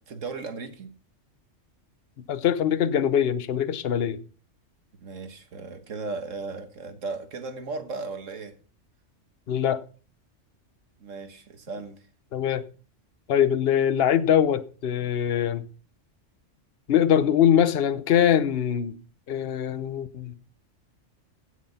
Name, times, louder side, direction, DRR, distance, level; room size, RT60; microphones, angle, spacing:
voice 1, 0.1-0.9 5.0-8.5 11.0-12.1, right 3 dB, 90° right, 1.9 m, -36 dB
voice 2, 2.3-4.2 9.5-9.8 12.3-12.6 13.3-15.6 16.9-19.0 19.3-20.4, left 9 dB, 55° left, 1.0 m, -22 dB
16.0 x 6.1 x 5.7 m
omnidirectional pair, 1.3 m